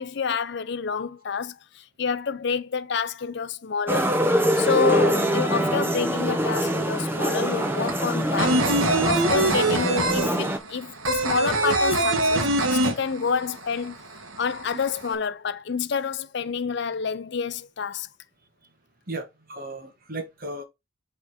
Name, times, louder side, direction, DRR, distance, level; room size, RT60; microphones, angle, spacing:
voice 1, 0.0-4.1 4.6-8.7 9.0-14.0 14.4-18.1, left 6 dB, 55° left, 0.5 m, -28 dB
sound 1, 3.9-10.6, right 1 dB, 10° right, 0.9 m, -24 dB
sound 2, 6.6-6.7 7.0-13.6 13.8-13.9 14.3-15.1, right 2 dB, 85° right, 1.5 m, -23 dB
voice 2, 19.1-20.6, right 2 dB, 45° right, 1.5 m, -35 dB
7.2 x 3.7 x 5.0 m
head